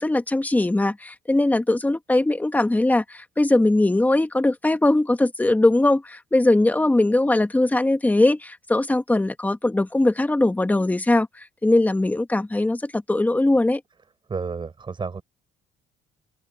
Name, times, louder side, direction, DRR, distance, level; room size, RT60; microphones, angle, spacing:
voice 1, 0.0-13.8, left 2 dB, 10° left, 1.7 m, -20 dB
voice 2, 14.3-15.2, right 5 dB, 30° right, 7.5 m, -31 dB
cardioid pair, 110°, 17 cm